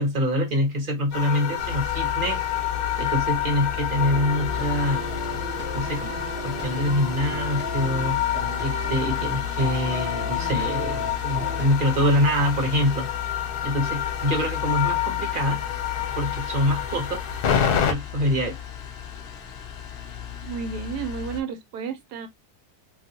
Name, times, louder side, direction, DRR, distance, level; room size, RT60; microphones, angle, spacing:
voice 1, 0.0-2.4 3.0-5.1 5.7-8.2 8.6-13.1 13.6-15.6 16.2-17.2 17.9-18.6, equal, 40° right, 0.9 m, -25 dB
sound 1, 1.1-17.9, left 9 dB, 85° left, 1.2 m, -28 dB
sound 2, 1.6-21.4, left 11 dB, 65° left, 0.6 m, -35 dB
sound 3, 4.0-11.7, left 1 dB, 10° right, 0.6 m, -35 dB
voice 2, 20.4-22.3, right 6 dB, 80° right, 1.2 m, -32 dB
3.1 x 2.7 x 2.7 m
omnidirectional pair, 1.7 m